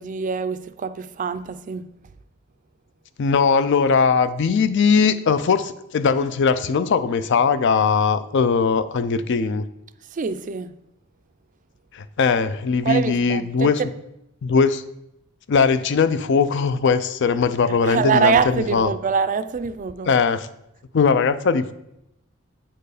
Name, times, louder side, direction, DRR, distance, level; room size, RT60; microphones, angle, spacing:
voice 1, 0.0-1.9 10.1-10.7 12.8-13.9 17.8-20.1, right 6 dB, 40° right, 0.4 m, -24 dB
voice 2, 3.2-9.6 11.9-13.8 14.4-14.8 15.5-18.9 20.1-20.5 20.9-21.7, left 5 dB, 60° left, 0.4 m, -20 dB
8.7 x 4.6 x 4.9 m
head